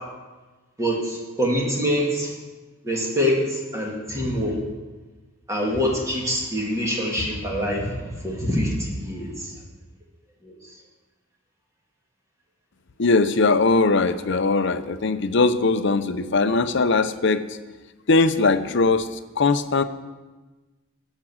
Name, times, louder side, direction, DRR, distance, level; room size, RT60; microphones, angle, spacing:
voice 1, 0.8-2.3 2.8-4.6 5.5-7.9 8.2-9.5 10.4-10.5, equal, 15° right, -2 dB, 2.3 m, -25 dB
voice 2, 13.0-17.6 18.1-19.8, left 3 dB, 60° left, 11 dB, 0.6 m, -20 dB
12.0 x 7.5 x 6.2 m, 1.2 s
head